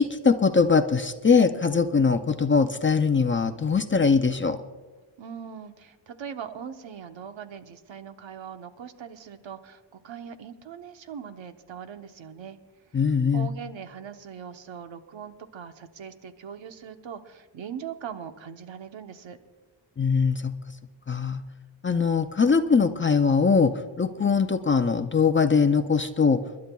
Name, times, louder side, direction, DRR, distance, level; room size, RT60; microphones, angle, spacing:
voice 1, 0.0-4.6 12.9-13.5 20.0-20.5 21.1-21.4 21.8-26.4, left 5 dB, 25° left, 8 dB, 0.5 m, -21 dB
voice 2, 5.2-12.6 12.9-13.0 13.3-19.4, right 8 dB, 70° right, 8 dB, 1.0 m, -40 dB
29.5 x 11.5 x 2.3 m, 1.3 s
wide cardioid pair, 150°, 47 cm